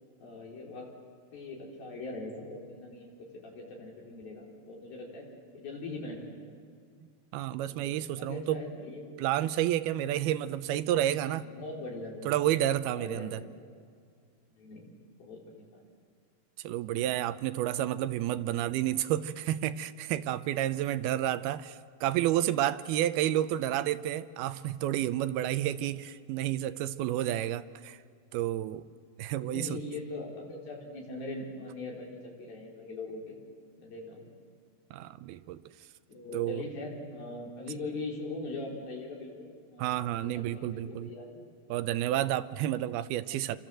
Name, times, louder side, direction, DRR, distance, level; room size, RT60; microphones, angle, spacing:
voice 1, 0.2-0.9 1.3-3.1 3.4-5.3 5.5-6.5 7.7-9.1 11.4-12.3 12.9-13.5 14.5-14.9 15.2-15.8 29.4-33.4 33.8-34.3 36.1-41.4, left 2 dB, 70° left, -1 dB, 6.0 m, -41 dB
voice 2, 7.3-8.6 9.2-11.5 12.3-13.4 16.6-28.0 28.3-28.8 29.2-29.8 34.9-35.6 36.3-36.6 39.8-41.1 41.7-43.6, right 12 dB, 90° right, 13 dB, 2.8 m, -30 dB
29.0 x 24.5 x 7.7 m, 2.2 s
omnidirectional pair, 4.3 m